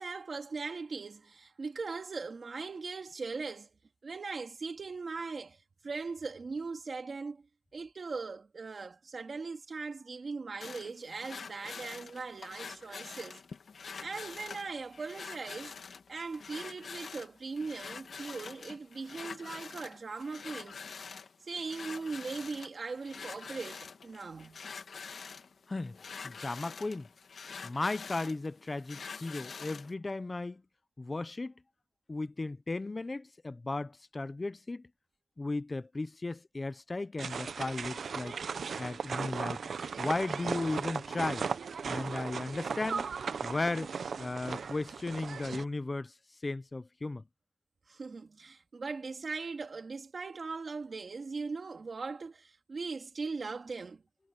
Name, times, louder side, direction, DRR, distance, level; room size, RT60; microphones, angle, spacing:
voice 1, 0.0-3.7 4.0-7.4 7.7-13.4 14.0-15.7 16.1-20.8 21.4-24.6 47.9-54.0, right 4 dB, 50° right, 2.1 m, -39 dB
sound 1, 10.6-29.9, left 5 dB, 75° left, 2.3 m, -46 dB
voice 2, 25.7-26.0 26.2-27.1 27.6-30.6 31.0-31.5 32.1-34.9 35.4-38.4 38.8-39.7 40.0-41.5 41.9-43.1 43.4-46.1 46.4-47.2, left 2 dB, 25° left, 0.7 m, -35 dB
sound 2, 37.2-45.6, right 6 dB, 75° right, 0.8 m, -37 dB
wide cardioid pair, 175°, 0 cm